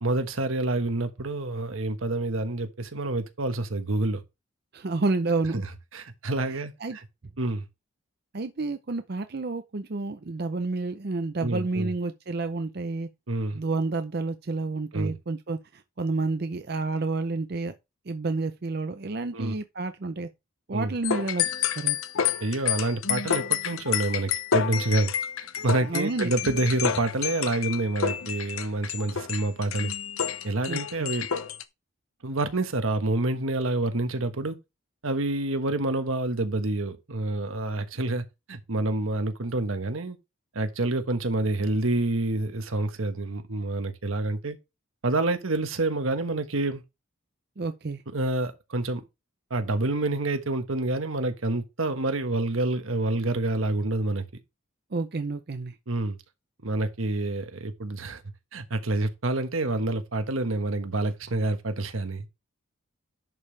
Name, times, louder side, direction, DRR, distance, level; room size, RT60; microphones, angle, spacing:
voice 1, 0.0-4.2 5.5-5.6 5.9-7.0 7.4-7.7 11.4-11.9 13.3-13.6 14.9-15.2 19.3-19.5 20.7-20.9 22.4-25.1 25.6-29.9 30.4-31.3 32.2-34.6 35.0-40.2 40.5-44.6 45.0-46.8 48.1-49.0 49.5-54.2 55.9-56.2 56.6-58.2 58.5-62.3, right 2 dB, 80° right, 1.3 m, -28 dB
voice 2, 4.7-5.6 6.8-7.0 8.3-13.1 13.5-17.7 18.1-20.3 20.7-22.0 25.9-26.3 30.7-31.1 47.6-48.0 54.9-55.8, right 3 dB, 50° right, 0.6 m, -30 dB
sound 1, 21.0-31.6, left 8 dB, 90° left, 0.8 m, -29 dB
11.0 x 5.4 x 3.3 m
head